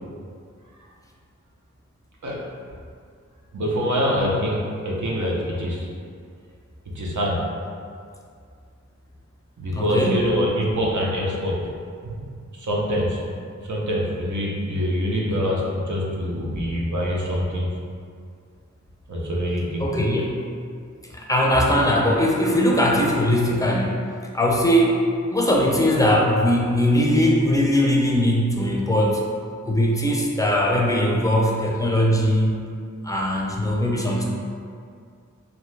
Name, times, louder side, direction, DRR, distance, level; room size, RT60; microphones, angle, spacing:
voice 1, 3.5-5.9 6.9-7.4 9.6-11.6 12.0-12.3 12.6-13.2 13.7-17.7 19.1-19.9, equal, 80° right, -4 dB, 0.6 m, -25 dB
voice 2, 9.7-10.3 19.8-20.3 21.1-24.0 24.3-25.0 25.3-29.2 29.6-32.6 33.0-34.2, equal, 10° left, -3 dB, 0.5 m, -20 dB
2.7 x 2.2 x 3.1 m, 2.2 s
wide cardioid pair, 50°, 29 cm